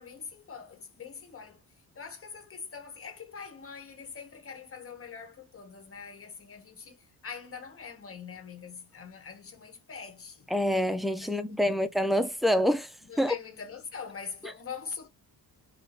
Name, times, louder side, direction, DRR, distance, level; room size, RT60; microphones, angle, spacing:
voice 1, 0.0-1.6 1.9-10.5 11.2-11.9 13.0-15.1, left 6 dB, 35° left, 1.1 m, -43 dB
voice 2, 10.5-12.9 13.2-13.3, equal, ahead, 0.4 m, -26 dB
2.9 x 2.2 x 3.9 m
cardioid pair, 100°, 39 cm